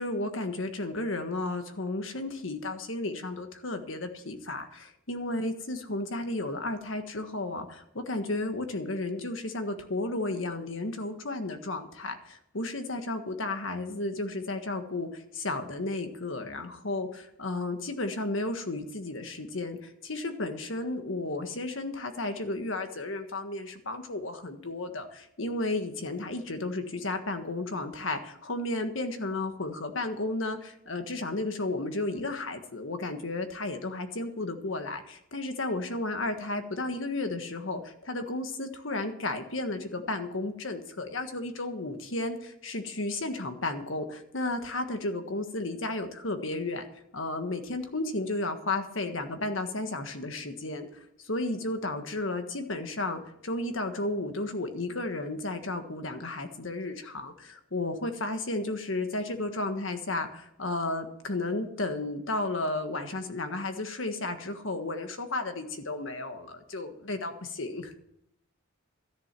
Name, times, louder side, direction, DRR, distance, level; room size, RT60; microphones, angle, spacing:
voice 1, 0.0-46.8 47.1-67.9, left 2 dB, 70° left, 7 dB, 1.6 m, -33 dB
13.5 x 10.5 x 6.0 m, 0.75 s
head